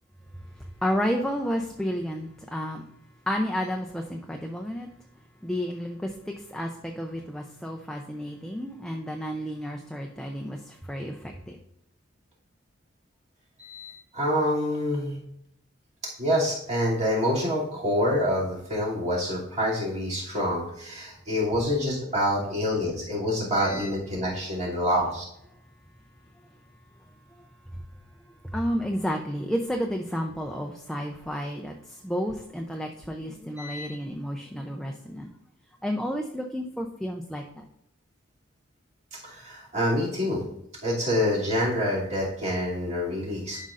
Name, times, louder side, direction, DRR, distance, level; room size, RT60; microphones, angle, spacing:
voice 1, 0.6-2.8 3.3-4.9 5.4-11.6 27.7-27.8 28.4-35.3 35.8-37.6, equal, ahead, 1 dB, 0.5 m, -31 dB
voice 2, 13.6-15.2 16.2-25.2 33.6-33.9 39.2-40.4 40.8-43.7, equal, 35° right, -5 dB, 2.7 m, -27 dB
11.5 x 5.4 x 2.5 m, 0.76 s
head